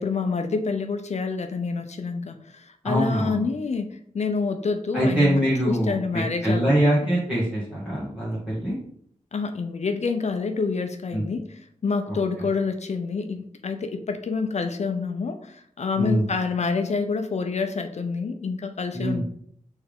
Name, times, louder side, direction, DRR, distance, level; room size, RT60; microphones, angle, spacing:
voice 1, 0.0-7.1 9.3-19.2, left 4 dB, 55° left, 7 dB, 0.5 m, -28 dB
voice 2, 2.8-3.5 4.9-8.8 11.1-11.2 12.1-12.2 16.0-16.2 18.9-19.2, right 1 dB, 10° right, -9 dB, 1.5 m, -23 dB
4.5 x 3.3 x 3.5 m, 0.64 s
wide cardioid pair, 90°, 13 cm